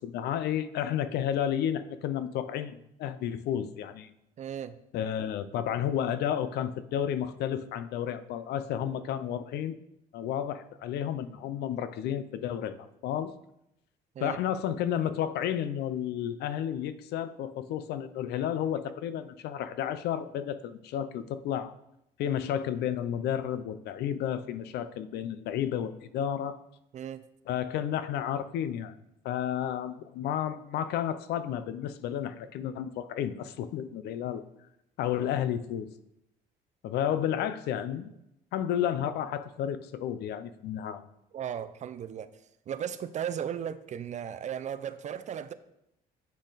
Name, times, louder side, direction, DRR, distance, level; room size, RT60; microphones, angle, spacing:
voice 1, 0.0-4.1 4.9-9.8 10.1-12.8 13.0-13.3 14.2-21.7 22.2-26.6 27.5-28.9 29.2-34.4 35.0-35.9 36.8-38.1 38.5-41.1, left 10 dB, 75° left, 12 dB, 0.6 m, -32 dB
voice 2, 4.4-4.8 14.2-14.4 26.9-27.2 41.3-42.3 42.7-45.5, right 9 dB, 45° right, 12 dB, 0.6 m, -36 dB
8.4 x 6.3 x 4.0 m, 0.83 s
cardioid pair, 110°, 17 cm